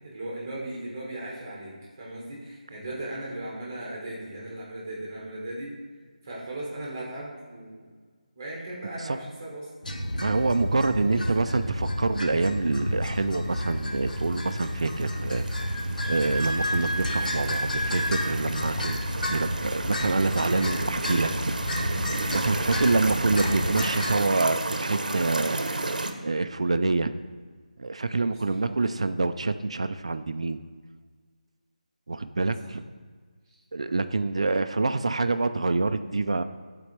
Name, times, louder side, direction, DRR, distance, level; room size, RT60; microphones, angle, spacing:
voice 1, 0.0-5.8 6.2-7.9 8.3-9.7 10.9-11.2 22.5-22.7 28.4-28.5, right 1 dB, 20° right, -4 dB, 1.3 m, -37 dB
sound 1, 9.8-24.2, equal, 70° left, 0.9 m, -31 dB
voice 2, 10.1-15.4 16.1-21.3 21.6-21.7 22.3-25.9 26.2-27.1 27.8-30.6 32.1-32.8 33.7-36.4, right 3 dB, 45° right, 11 dB, 0.3 m, -26 dB
sound 2, 14.0-26.1, right 2 dB, 70° right, 0.7 m, -33 dB
Wind instrument woodwind instrument, 15.7-18.3, equal, 10° left, 2.3 m, -31 dB
11.5 x 4.2 x 3.2 m, 1.5 s
figure-of-eight pair, 175°, 4 cm